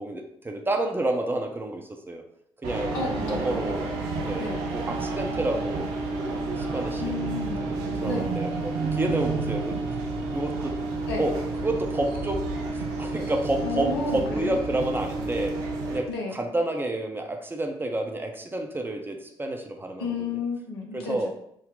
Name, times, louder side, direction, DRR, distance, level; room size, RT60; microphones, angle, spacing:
voice 1, 0.0-2.2 2.6-3.8 4.2-4.5 4.7-7.2 7.6-9.7 10.3-10.7 11.2-12.4 12.7-15.5 15.9-20.3 20.9-21.3, right 1 dB, 15° right, 3 dB, 0.6 m, -30 dB
sound 1, 2.6-16.0, right 3 dB, 65° right, 0.6 m, -30 dB
voice 2, 2.9-3.6 4.4-4.6 7.0-7.6 8.0-8.3 11.1-11.2 13.6-14.6 16.1-16.4 20.0-21.3, left 3 dB, 75° left, 0 dB, 0.7 m, -32 dB
3.8 x 2.1 x 3.7 m, 0.72 s
figure-of-eight pair, 45°, 13 cm